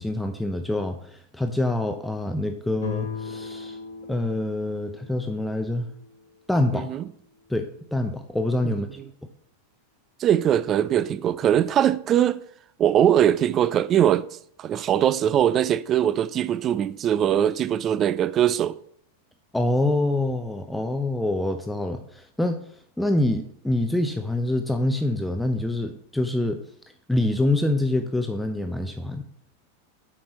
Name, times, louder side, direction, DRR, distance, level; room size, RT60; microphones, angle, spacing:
voice 1, 0.0-3.8 4.1-5.9 6.5-6.9 7.5-9.0 19.5-22.6 23.0-26.6 27.1-29.3, left 1 dB, 5° left, 0.7 m, -26 dB
sound 1, 2.8-6.4, left 5 dB, 65° left, 1.6 m, -37 dB
voice 2, 6.7-7.1 8.6-9.1 10.2-12.4 12.8-14.3 14.6-18.8, right 10 dB, 30° right, 0.5 m, -21 dB
8.6 x 6.0 x 4.2 m
figure-of-eight pair, 90°, 0 cm